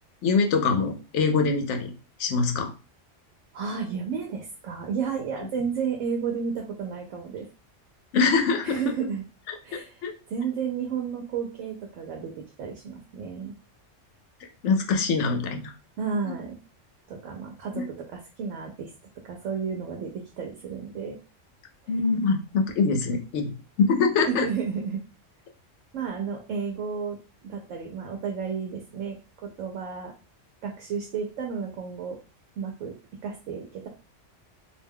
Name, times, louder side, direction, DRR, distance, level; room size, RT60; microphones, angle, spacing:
voice 1, 0.2-1.9 2.2-2.7 8.1-8.8 9.7-10.1 14.6-15.7 17.7-17.8 21.9-24.5, left 4 dB, 75° left, 4 dB, 0.9 m, -24 dB
voice 2, 3.5-7.5 8.6-9.2 9.6-10.0 10.3-13.5 16.0-16.6 17.1-18.9 19.2-21.2 24.3-25.0 25.9-30.1 30.6-32.2 32.6-32.9 33.2-33.9, right 6 dB, 90° right, 2 dB, 1.0 m, -32 dB
2.5 x 2.2 x 3.4 m, 0.33 s
omnidirectional pair, 1.3 m